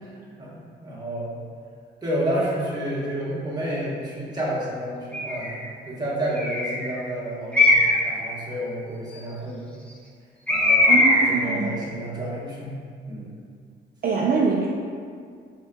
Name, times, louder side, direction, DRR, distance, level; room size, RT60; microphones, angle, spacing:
voice 1, 0.0-1.4 2.0-5.6 5.8-9.7 10.5-12.8 13.1-13.4, right 1 dB, 20° right, -6 dB, 1.2 m, -30 dB
Bird, 5.1-5.6 6.3-6.9 7.5-8.1 10.5-11.5, left 1 dB, 5° left, 0.6 m, -19 dB
voice 2, 10.9-11.7 14.0-14.7, right 4 dB, 50° right, -3 dB, 0.4 m, -23 dB
4.4 x 3.7 x 2.2 m, 2.2 s
cardioid pair, 90°, 20 cm